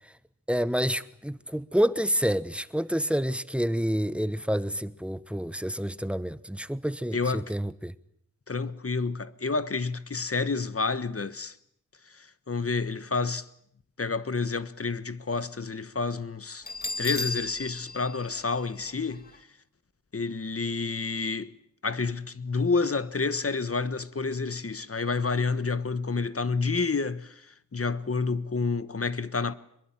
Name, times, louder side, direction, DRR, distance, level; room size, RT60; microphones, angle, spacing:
voice 1, 0.5-7.9, equal, 5° right, 1.1 m, -28 dB
voice 2, 7.1-7.5 8.5-11.5 12.1-13.5 14.0-16.7 17.0-19.2 20.1-21.5 21.8-29.5, left 4 dB, 45° left, 1.3 m, -29 dB
Bell, 16.7-19.4, left 3 dB, 30° left, 2.2 m, -35 dB
25.5 x 22.0 x 9.0 m
wide cardioid pair, 75°, 32 cm